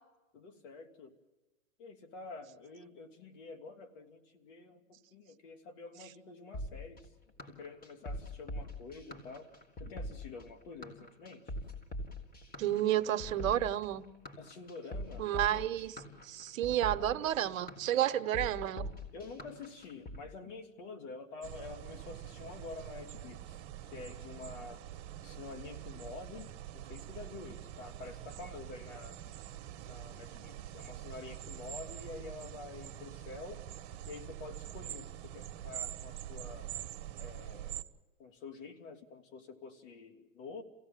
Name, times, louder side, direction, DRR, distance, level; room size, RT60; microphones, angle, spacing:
voice 1, 0.3-1.2 1.8-7.1 7.5-9.5 9.8-11.5 14.4-15.3 17.9-18.1 19.1-24.9 25.2-29.2 29.8-33.6 34.1-36.7 37.2-37.8 38.2-40.6, left 4 dB, 65° left, 8 dB, 3.0 m, -48 dB
sound 1, 6.5-20.2, left 1 dB, 20° left, 4.1 m, -43 dB
voice 2, 12.6-14.0 15.2-18.9, right 12 dB, 75° right, 12 dB, 1.2 m, -31 dB
sound 2, 21.4-37.8, right 12 dB, 50° right, 1.4 m, -45 dB
27.5 x 17.0 x 7.5 m, 1.1 s
hypercardioid pair, 115°, 40 cm